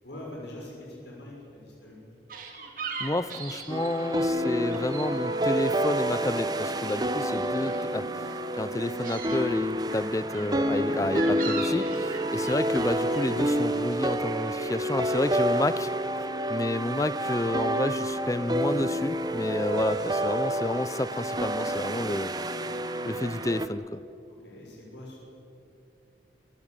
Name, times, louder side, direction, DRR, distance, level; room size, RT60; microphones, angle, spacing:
voice 1, 0.0-2.0 24.3-25.2, left 1 dB, 75° left, -2 dB, 6.5 m, -43 dB
sound 1, 2.3-5.1 5.3-6.2 6.5-8.5 8.9-9.4 9.9-13.5, right 5 dB, 50° right, 3.2 m, -40 dB
voice 2, 3.0-15.9 16.5-22.3 23.0-24.0, left 1 dB, 20° left, 16 dB, 0.5 m, -30 dB
sound 2, 3.7-23.7, right 1 dB, 20° right, 0.9 m, -28 dB
27.5 x 15.0 x 9.0 m, 2.8 s
head